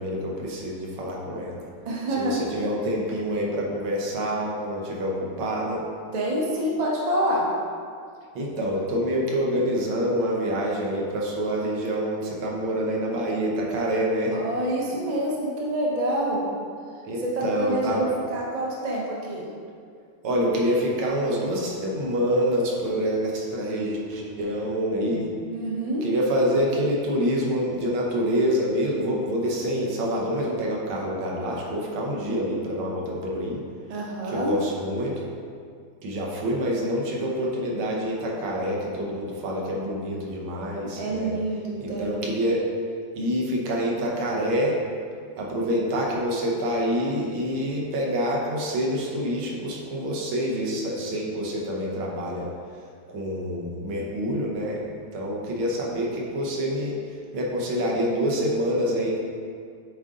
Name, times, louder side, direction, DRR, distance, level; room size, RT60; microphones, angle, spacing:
voice 1, 0.0-1.7 2.2-5.8 8.4-14.4 17.1-18.1 20.2-25.3 26.0-33.6 34.3-35.3 36.0-41.3 41.8-42.6 43.2-44.8 45.4-52.5 53.1-54.8 55.1-57.0 57.3-59.2, equal, 80° right, -2 dB, 1.8 m, -26 dB
voice 2, 1.8-2.4 6.1-7.5 14.3-16.4 17.2-19.5 25.5-26.1 33.9-34.5 41.0-42.2, right 1 dB, 40° right, -4 dB, 0.5 m, -27 dB
7.9 x 3.8 x 3.7 m, 2.2 s
omnidirectional pair, 2.3 m